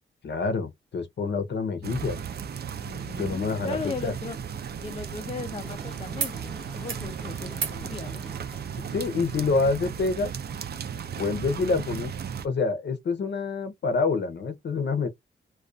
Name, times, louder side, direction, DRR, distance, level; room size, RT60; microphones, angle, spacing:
voice 1, 0.2-2.2 3.2-3.8 4.0-4.1 8.9-10.3 11.2-12.1 12.4-15.1, left 4 dB, 60° left, 0.7 m, -27 dB
sound 1, 1.8-12.5, right 7 dB, 55° right, 0.4 m, -35 dB
voice 2, 2.8-4.4 4.8-8.2, left 5 dB, 30° left, 0.4 m, -37 dB
sound 2, 5.6-8.8, equal, ahead, 0.7 m, -48 dB
sound 3, 6.2-6.4 6.7-7.1 7.5-7.8 9.2-9.3, right 6 dB, 80° right, 0.8 m, -36 dB
2.3 x 2.3 x 2.5 m
wide cardioid pair, 120°, 20 cm